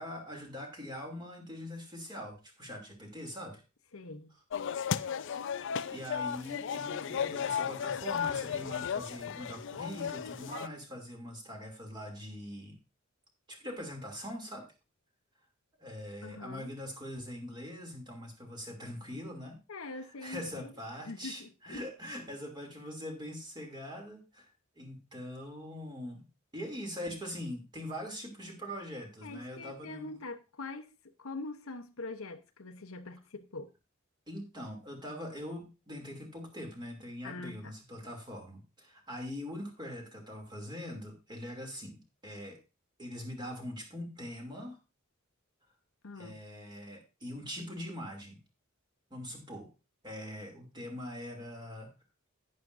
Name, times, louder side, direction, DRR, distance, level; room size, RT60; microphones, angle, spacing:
voice 1, 0.0-3.6 5.2-5.5 5.9-12.8 13.5-14.7 15.8-19.6 20.2-24.5 24.8-26.2 26.5-30.1 34.3-42.6 43.0-44.8 46.2-48.4 49.1-49.7 50.0-51.9, equal, 20° right, 2.7 m, -42 dB
voice 2, 3.9-4.3 16.2-16.7 19.7-20.7 21.0-21.8 29.2-33.7 37.2-37.7 46.0-46.4, left 3 dB, 85° left, 0.9 m, -43 dB
sound 1, 4.5-10.7, left 7 dB, 65° left, 0.4 m, -35 dB
11.0 x 9.7 x 2.6 m
head